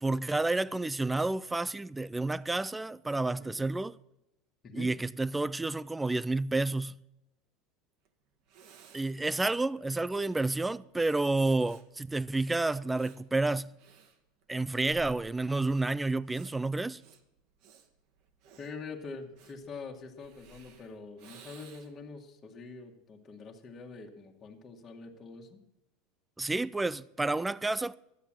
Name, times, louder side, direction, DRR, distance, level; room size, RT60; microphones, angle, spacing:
voice 1, 0.0-4.0 4.7-6.9 8.9-13.7 14.5-17.0 26.4-28.0, right 2 dB, 10° right, 0.4 m, -30 dB
Breathing, 8.0-8.1 8.5-22.1, right 6 dB, 55° right, 1.7 m, -57 dB
voice 2, 18.6-25.6, left 4 dB, 25° left, 1.9 m, -45 dB
12.5 x 8.2 x 8.8 m
supercardioid pair, 140°, 0 cm